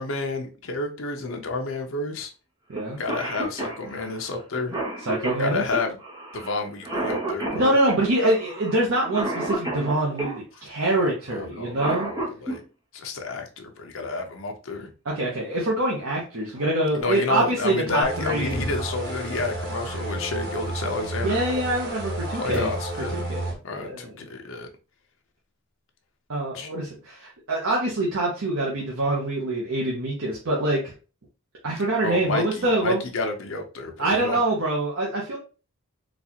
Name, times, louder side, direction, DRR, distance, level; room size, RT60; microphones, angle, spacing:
voice 1, 0.0-2.3 3.0-4.8 5.4-6.0 6.3-7.7 11.3-12.6 12.9-14.9 16.9-21.6 22.4-23.3 23.6-24.7 26.5-26.7 32.0-34.4, left 3 dB, 65° left, 0.7 m, -30 dB
voice 2, 2.7-3.0 5.1-5.6 7.5-12.1 15.0-18.6 21.2-22.7 23.1-24.1 26.3-30.9 31.6-33.0 34.0-35.4, right 1 dB, 70° right, 0.8 m, -25 dB
Cough, 2.8-2.9 3.1-10.4 11.5-12.6 14.2-14.3 15.3-15.6 16.1-16.2 16.6-17.0, right 2 dB, 20° right, 0.8 m, -31 dB
sound 1, 18.0-23.5, right 1 dB, 50° right, 1.2 m, -31 dB
sound 2, 18.5-20.0 22.5-23.1, equal, 5° left, 1.3 m, -37 dB
4.0 x 2.4 x 2.8 m
head